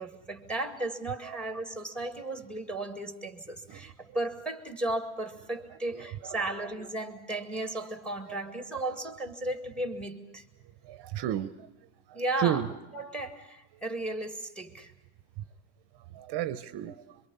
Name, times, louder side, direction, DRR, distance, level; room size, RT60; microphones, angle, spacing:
voice 1, 0.0-10.5 12.1-12.6 12.9-14.9, right 2 dB, ahead, 6 dB, 2.1 m, -35 dB
voice 2, 5.9-6.6 8.3-8.4 10.8-11.7 12.1-12.7 15.4-15.5 16.1-17.2, right 11 dB, 55° right, 12 dB, 0.9 m, -33 dB
26.5 x 23.5 x 5.6 m, 0.96 s
cardioid pair, 145°, 47 cm